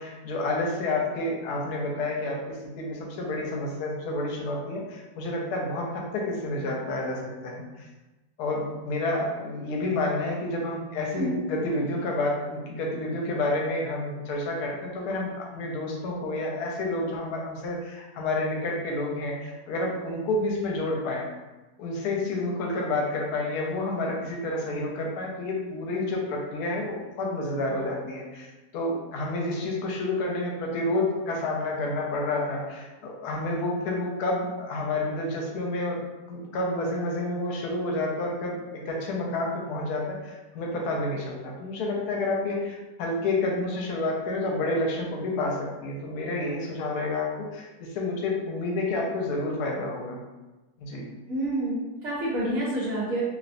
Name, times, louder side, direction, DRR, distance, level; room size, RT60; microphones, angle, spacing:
voice 1, 0.0-7.9 8.4-21.2 21.8-36.0 36.3-50.2 50.8-51.1, left 2 dB, 85° left, -1 dB, 1.1 m, -29 dB
voice 2, 51.3-53.2, right 1 dB, 65° right, -8 dB, 1.2 m, -28 dB
2.8 x 2.1 x 2.5 m, 1.1 s
omnidirectional pair, 1.6 m